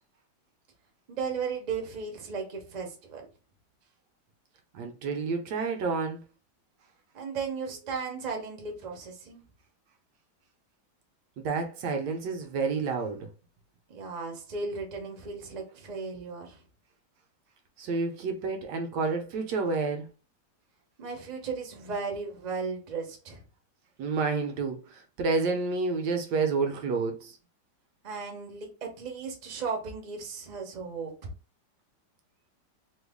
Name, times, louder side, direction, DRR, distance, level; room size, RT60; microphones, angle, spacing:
voice 1, 1.1-3.3 7.1-9.4 13.9-16.6 21.0-23.4 28.0-31.3, right 5 dB, 45° right, 0.5 m, -35 dB
voice 2, 4.7-6.2 11.4-13.3 17.8-20.1 24.0-27.4, right 4 dB, 75° right, 1.2 m, -29 dB
3.1 x 2.2 x 3.5 m
omnidirectional pair, 2.0 m